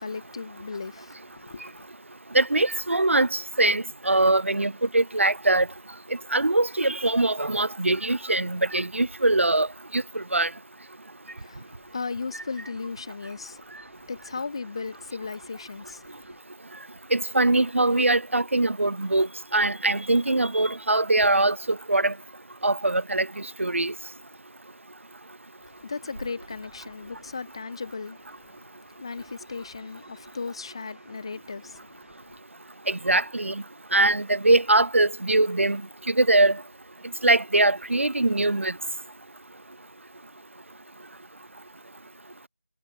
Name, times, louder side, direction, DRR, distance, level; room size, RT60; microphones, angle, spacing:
voice 1, 0.0-1.9 11.3-16.4 25.6-32.4, left 4 dB, 20° left, 0.9 m, -37 dB
voice 2, 2.3-5.7 6.3-9.7 9.9-10.5 17.1-19.3 19.5-21.6 21.9-22.1 22.6-23.3 23.6-23.9 32.9-33.6 33.9-35.8 36.1-36.6 37.2-38.7, right 2 dB, 60° right, 0.8 m, -22 dB
figure-of-eight pair, 165°, 8 cm